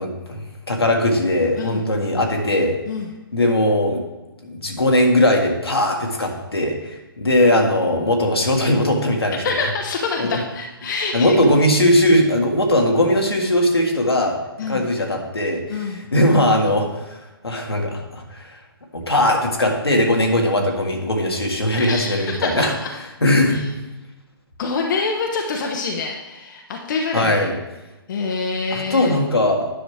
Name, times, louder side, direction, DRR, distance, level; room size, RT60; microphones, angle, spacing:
voice 1, 0.0-2.8 3.3-4.0 4.4-9.4 10.2-10.3 11.1-14.4 14.7-17.2 17.4-18.6 18.9-22.7 23.2-23.6 27.1-27.6 28.7-29.7, left 1 dB, 85° left, 1 dB, 1.7 m, -19 dB
voice 2, 9.4-11.4 14.6-14.9 15.7-16.0 21.8-22.9 23.5-23.7 24.6-27.5 28.1-29.2, left 4 dB, 55° left, 1 dB, 1.0 m, -26 dB
10.0 x 6.4 x 3.3 m, 1.1 s
figure-of-eight pair, 130°, 13 cm